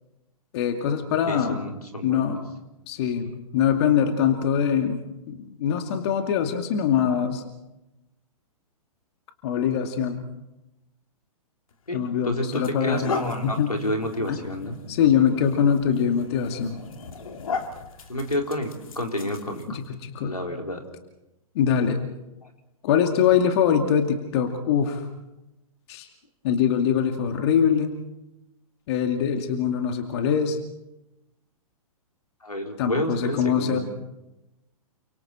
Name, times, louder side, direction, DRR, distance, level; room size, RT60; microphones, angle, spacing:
voice 1, 0.5-1.6 2.0-2.5 2.9-5.0 5.3-7.4 9.4-10.3 11.9-13.2 13.4-13.7 14.3-14.4 14.9-16.8 19.7-20.3 21.5-22.0 22.8-25.0 25.9-26.1 26.4-28.0 28.9-30.6 32.8-33.8, left 8 dB, 45° left, 5 dB, 2.3 m, -23 dB
voice 2, 1.1-2.4 11.9-14.8 18.1-19.8 20.2-20.8 32.4-33.8, left 1 dB, 85° left, 2 dB, 4.0 m, -30 dB
sound 1, 11.7-11.9 12.5-19.9, left 5 dB, 65° left, 2.9 m, -36 dB
29.5 x 25.5 x 4.4 m, 0.94 s
figure-of-eight pair, 115°, 19 cm